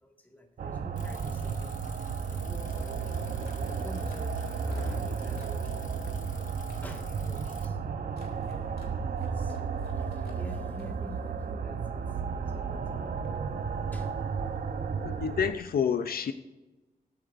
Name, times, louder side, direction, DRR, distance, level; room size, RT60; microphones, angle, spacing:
voice 1, 0.0-1.8 2.3-3.4 3.7-6.0 6.6-7.8 8.5-12.0 12.3-13.5 13.9-14.1, equal, 10° left, 2 dB, 1.7 m, -46 dB
sound 1, 0.6-15.5, right 5 dB, 70° right, 0.8 m, -33 dB
Bicycle, 1.0-7.7, left 5 dB, 55° left, 1.2 m, -52 dB
sound 2, 3.1-6.9 7.2-7.7 8.1-8.9 9.2-10.9, left 3 dB, 90° left, 2.5 m, -54 dB
voice 2, 15.0-16.3, left 7 dB, 75° left, 10 dB, 0.5 m, -28 dB
21.0 x 8.6 x 2.6 m, 1.1 s
wide cardioid pair, 155°, 16 cm